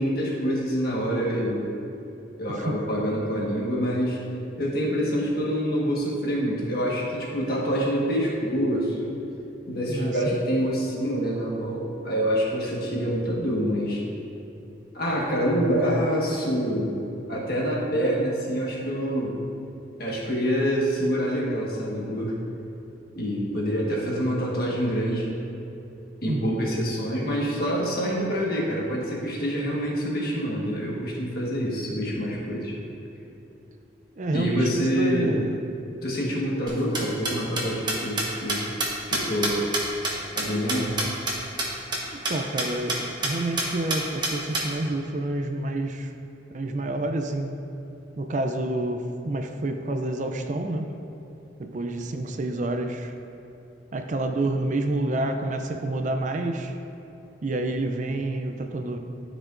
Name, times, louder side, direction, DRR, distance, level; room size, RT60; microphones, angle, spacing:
voice 1, 0.0-1.7 2.4-4.2 4.6-9.1 9.7-14.0 14.9-17.0 17.3-19.3 20.0-22.3 23.1-25.3 26.2-32.7 34.3-35.4 36.0-38.7 39.1-39.7 40.3-41.0, equal, 50° left, -4 dB, 1.5 m, -26 dB
voice 2, 9.9-10.4 26.3-26.6 34.2-35.6 42.1-46.1 46.5-47.6 48.2-50.9 51.6-53.1 53.9-56.8 57.4-59.0, right 2 dB, 40° right, 5 dB, 0.4 m, -28 dB
sound 1, 36.7-41.3 41.6-41.7 41.9-42.0 42.2-42.3 42.6-43.0 43.2-43.3 43.6-44.6, right 2 dB, 25° right, 1.1 m, -26 dB
13.5 x 5.0 x 2.6 m, 2.9 s
head